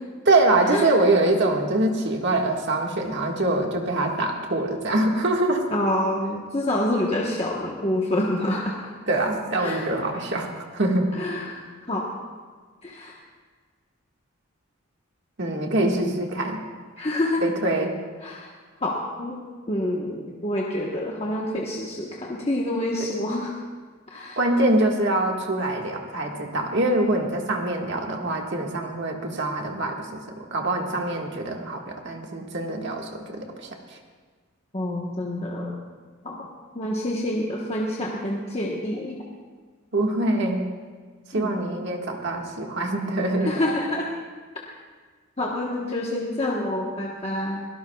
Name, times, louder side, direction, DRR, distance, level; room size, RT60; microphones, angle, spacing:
voice 1, 0.2-5.6 9.1-11.0 15.4-16.6 17.4-17.9 24.4-33.7 39.9-40.6 41.3-43.6, right 2 dB, 55° right, 1 dB, 1.8 m, -24 dB
voice 2, 5.7-8.8 9.6-9.8 11.1-12.0 12.8-13.2 17.0-17.4 18.2-18.5 18.8-19.4 19.7-23.5 24.1-24.4 34.7-35.7 36.2-36.4 36.7-39.2 41.3-41.5 43.4-44.1 45.4-47.7, left 1 dB, 30° left, -3 dB, 1.2 m, -27 dB
22.5 x 17.5 x 2.4 m, 1.5 s
head